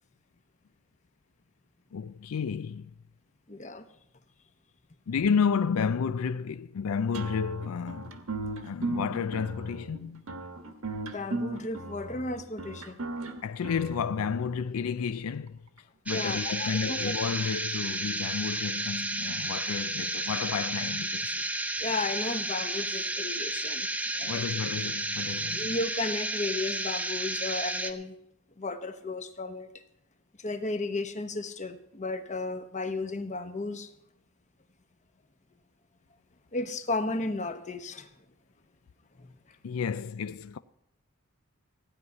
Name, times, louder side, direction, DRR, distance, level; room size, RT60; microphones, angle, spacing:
voice 1, 1.9-3.0 5.1-8.1 8.6-10.2 13.4-15.6 16.1-21.4 24.3-25.7 39.6-40.6, left 6 dB, 90° left, 0.4 m, -31 dB
voice 2, 3.5-3.9 11.1-13.0 13.7-13.8 16.1-17.1 21.8-23.9 24.2-24.5 25.5-28.1 28.6-29.7 30.4-33.9 36.5-38.1 39.2-39.3, left 2 dB, 35° left, 1.1 m, -34 dB
sound 1, 7.1-14.6, right 2 dB, 85° right, 1.4 m, -36 dB
sound 2, 16.1-27.9, right 2 dB, 5° right, 0.7 m, -32 dB
16.0 x 5.6 x 9.6 m
head